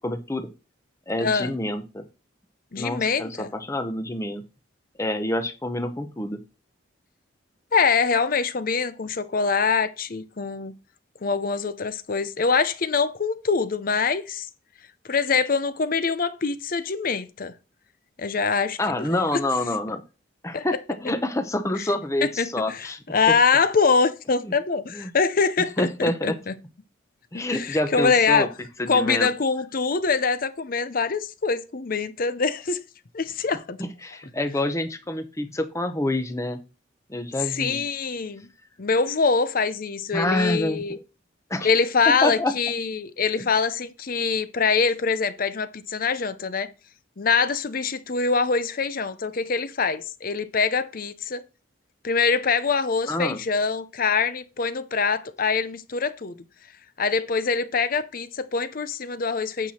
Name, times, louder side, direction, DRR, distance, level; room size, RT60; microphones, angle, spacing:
voice 1, 0.0-0.5 1.1-2.0 2.8-4.4 5.0-6.4 18.8-20.0 20.4-23.4 24.4-24.5 24.9-25.1 25.8-26.4 27.3-28.5 28.8-29.3 33.8-36.6 37.1-37.8 40.1-41.0 41.5-41.7 42.1-42.5 53.1-53.4, left 1 dB, 15° left, 0.8 m, -27 dB
voice 2, 1.2-1.5 2.7-3.5 7.7-10.7 11.2-14.5 15.1-17.5 18.2-19.1 19.3-19.4 20.5-20.7 21.8-21.9 22.4-26.5 27.3-28.5 28.9-32.8 33.1-33.8 37.4-38.5 38.8-41.0 41.6-46.7 47.2-51.4 52.0-56.3 57.0-59.7, left 5 dB, 45° left, 0.6 m, -24 dB
9.1 x 5.7 x 4.3 m
head